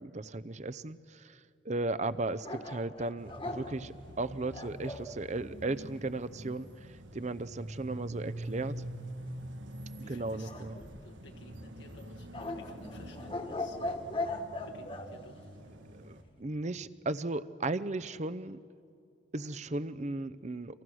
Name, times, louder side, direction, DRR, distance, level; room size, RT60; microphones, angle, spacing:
voice 1, 0.0-8.9 10.1-10.8 16.0-16.1 16.4-18.6 19.3-20.8, right 2 dB, 35° right, 14 dB, 0.7 m, -36 dB
sound 1, 2.4-5.1 10.4-11.3 12.3-15.1, left 2 dB, 30° left, 1.5 m, -39 dB
sound 2, 3.2-16.2, right 1 dB, 75° right, 1.8 m, -46 dB
voice 2, 10.0-13.8 14.6-15.5, left 2 dB, 70° left, 2 dB, 1.4 m, -55 dB
29.5 x 26.5 x 6.3 m, 2.3 s
head